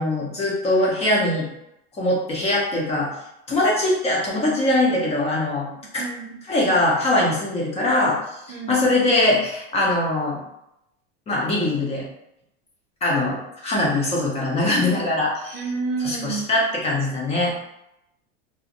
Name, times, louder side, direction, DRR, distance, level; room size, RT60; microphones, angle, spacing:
voice 1, 0.0-1.5 2.0-3.1 3.5-6.0 6.4-8.2 8.5-10.4 11.3-12.1 13.0-15.7 16.0-17.5, left 1 dB, 20° left, -3 dB, 0.5 m, -22 dB
voice 2, 6.0-6.4 8.5-8.8 15.5-16.5, right 4 dB, 45° right, 1 dB, 0.4 m, -29 dB
2.5 x 2.1 x 2.8 m, 0.83 s
supercardioid pair, 135°, 33 cm